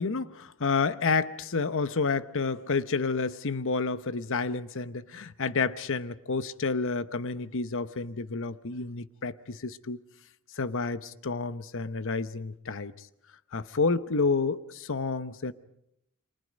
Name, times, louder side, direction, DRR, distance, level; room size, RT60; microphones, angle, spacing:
voice 1, 0.0-10.0 10.6-13.1 13.5-15.5, left 4 dB, 65° left, 0.9 m, -30 dB
29.0 x 24.0 x 5.2 m
head